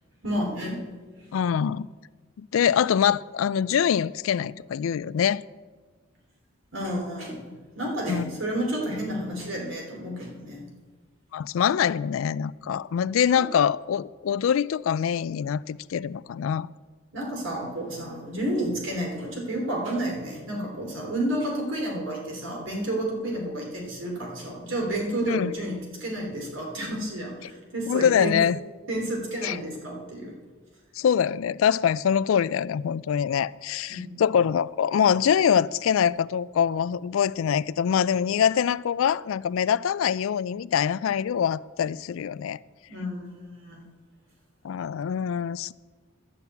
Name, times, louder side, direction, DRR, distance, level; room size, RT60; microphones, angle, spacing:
voice 1, 0.2-0.8 1.1-1.3 6.7-10.6 13.3-13.5 17.1-28.3 28.9-30.3 33.9-34.2 42.9-43.8, right 1 dB, 75° right, 3.3 m, -31 dB
voice 2, 1.3-1.9 2.4-5.4 8.1-8.3 11.3-16.7 25.3-25.5 27.9-28.6 29.4-29.6 31.0-42.6 44.6-45.7, left 8 dB, 85° left, 0.3 m, -24 dB
11.0 x 7.0 x 8.2 m
head